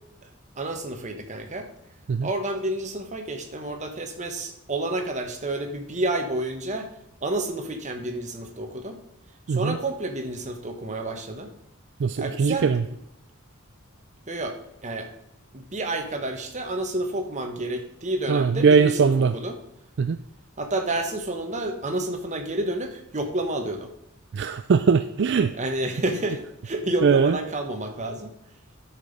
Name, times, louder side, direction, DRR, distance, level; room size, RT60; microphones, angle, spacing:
voice 1, 0.6-1.7 2.2-6.9 7.2-9.0 9.5-11.5 12.2-12.7 14.3-14.6 14.8-15.1 15.5-19.6 20.6-23.9 25.6-28.3, right 2 dB, 35° right, 5 dB, 1.3 m, -30 dB
voice 2, 12.0-12.8 18.3-19.3 20.0-20.2 24.3-25.5 27.0-27.4, right 5 dB, 55° right, 11 dB, 0.4 m, -20 dB
10.5 x 6.0 x 5.3 m, 0.83 s
head